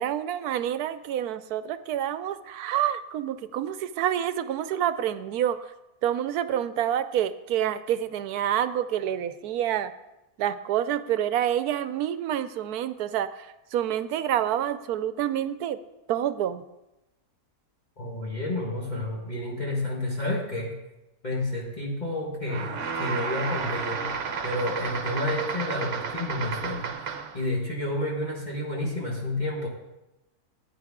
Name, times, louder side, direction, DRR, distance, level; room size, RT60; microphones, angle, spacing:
voice 1, 0.0-5.6 6.0-9.9 10.4-13.5 13.7-15.8 16.1-16.6, right 10 dB, 80° right, 13 dB, 1.1 m, -27 dB
voice 2, 18.0-20.8 21.2-24.1 24.4-26.9 27.3-29.7, left 1 dB, 30° left, -3 dB, 1.5 m, -30 dB
sound 1, 22.5-27.4, right 5 dB, 60° right, 1.1 m, -32 dB
13.5 x 9.4 x 3.6 m, 0.97 s
omnidirectional pair, 1.6 m